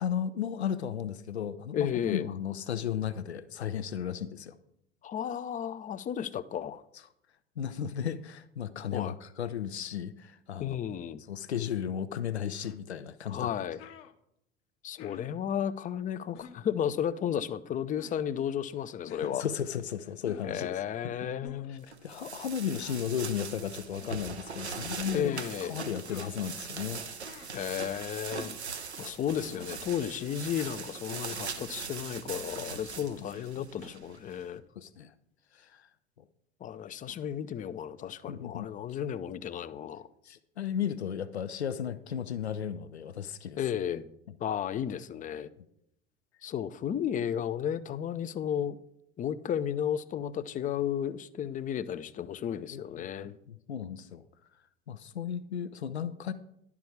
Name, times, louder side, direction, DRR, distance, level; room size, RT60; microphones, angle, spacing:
voice 1, 0.0-4.6 7.6-10.8 11.3-13.5 19.2-20.8 21.2-21.3 21.7-27.0 27.3-27.4 32.8-33.1 33.6-33.7 34.8-35.1 35.5-35.9 37.1-37.2 38.3-39.0 40.2-43.6 52.7-54.2 54.9-56.3, left 9 dB, 80° left, 13 dB, 0.6 m, -35 dB
voice 2, 1.7-2.3 5.0-6.8 8.9-9.1 10.6-11.2 13.3-13.8 14.8-19.5 20.4-21.9 25.1-25.8 27.5-28.5 29.0-34.6 36.6-40.1 43.6-44.1 44.4-45.5 46.4-48.8 49.2-53.4, left 9 dB, 25° left, 14 dB, 0.6 m, -33 dB
sound 1, 12.6-12.8 13.5-13.6 13.8-14.1 15.0-15.4 16.3-16.6 17.9-18.2 19.1-19.4 20.2-20.6 21.4-21.7 22.7-23.1 24.0-24.3 25.0-25.3 26.1-26.3 27.2-27.5 28.4-28.7 29.5-29.8 30.5-30.8, left 9 dB, 45° left, 0.9 m, -49 dB
sound 2, 21.9-34.4, right 5 dB, 80° right, 0.9 m, -41 dB
11.0 x 4.8 x 7.1 m, 0.75 s
figure-of-eight pair, 70°, 32 cm